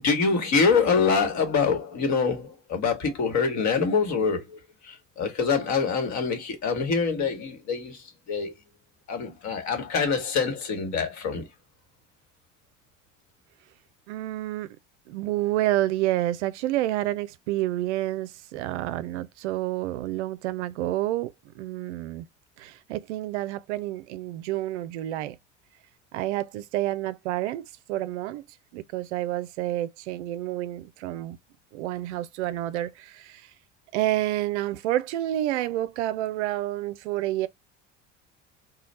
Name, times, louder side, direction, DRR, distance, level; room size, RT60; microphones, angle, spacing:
voice 1, 0.0-8.5 9.1-11.5, left 5 dB, 50° left, 1.4 m, -25 dB
voice 2, 14.1-14.8 15.1-22.3 22.6-25.4 26.1-28.4 28.7-31.4 31.7-33.5 33.9-37.5, right 15 dB, 65° right, 0.5 m, -29 dB
3.1 x 2.3 x 4.1 m
figure-of-eight pair, 60°, 37 cm